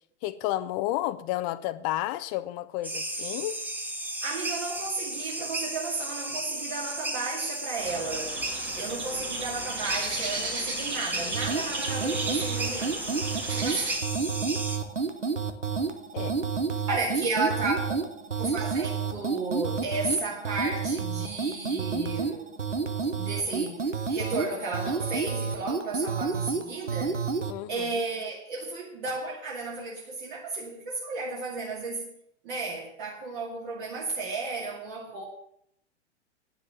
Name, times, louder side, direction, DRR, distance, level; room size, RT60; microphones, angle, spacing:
voice 1, 0.2-3.6 16.1-16.3 27.5-28.0, left 15 dB, 30° left, 0.6 m, -31 dB
sound 1, 2.8-14.8, right 1 dB, 5° right, 1.0 m, -34 dB
voice 2, 4.2-8.4 8.7-13.0 13.5-13.9 16.9-18.0 18.4-22.5 23.2-27.2 27.7-32.1 32.4-35.2, right 3 dB, 45° right, 2.5 m, -33 dB
sound 2, 7.8-14.0, right 3 dB, 70° right, 3.7 m, -36 dB
sound 3, 11.3-27.6, right 5 dB, 90° right, 0.9 m, -30 dB
9.6 x 7.3 x 7.5 m
figure-of-eight pair, 100°, 35 cm